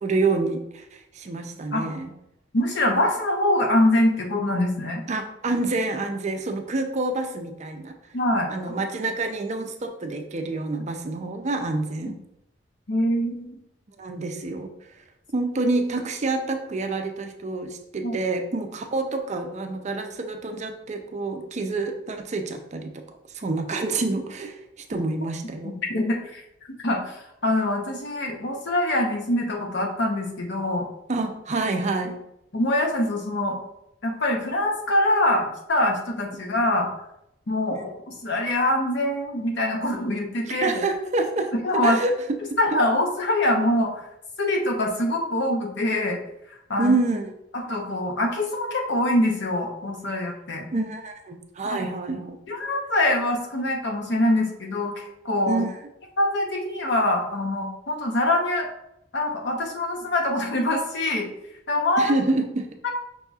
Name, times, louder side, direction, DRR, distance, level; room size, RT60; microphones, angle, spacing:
voice 1, 0.0-2.1 5.1-7.9 8.5-12.1 14.0-14.7 15.3-23.0 23.3-24.6 24.9-25.7 31.1-32.2 37.7-37.9 40.5-41.5 41.8-42.1 46.8-47.3 50.7-52.4 55.5-55.8 62.0-62.7, right 3 dB, 40° right, 5 dB, 0.5 m, -27 dB
voice 2, 2.5-5.0 8.1-8.5 12.1-12.2 12.9-13.5 18.0-18.2 25.6-26.4 26.7-30.9 32.5-33.6 34.0-36.9 37.5-40.7 41.6-42.0 42.6-44.1 44.4-46.2 46.7-47.0 47.5-50.7 51.7-51.8 52.5-54.9 55.2-55.6 56.2-58.7 59.1-61.3 61.7-62.1 62.8-62.9, left 1 dB, 65° left, 1 dB, 0.8 m, -24 dB
5.4 x 4.0 x 2.3 m, 0.81 s
head